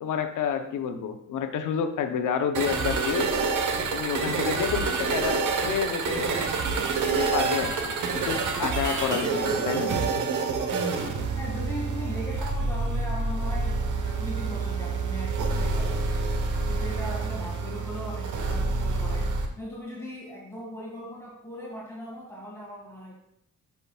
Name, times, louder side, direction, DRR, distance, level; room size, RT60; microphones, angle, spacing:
voice 1, 0.0-3.3 3.9-6.5 7.1-9.9, left 7 dB, 90° left, 7 dB, 0.8 m, -29 dB
sound 1, 2.5-19.5, right 4 dB, 80° right, 1.0 m, -27 dB
voice 2, 11.4-16.1 16.7-23.1, left 1 dB, 10° left, -6 dB, 1.9 m, -39 dB
11.0 x 5.8 x 2.3 m, 0.76 s
wide cardioid pair, 160°, 30 cm